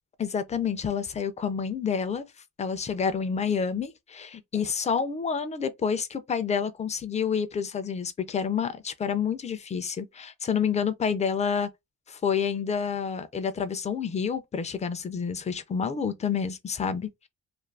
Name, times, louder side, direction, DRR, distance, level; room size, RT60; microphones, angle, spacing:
voice 1, 0.2-2.2 2.6-11.7 12.1-17.1, left 6 dB, 20° left, 0.3 m, -28 dB
2.5 x 2.5 x 3.3 m
cardioid pair, 145°, 35 cm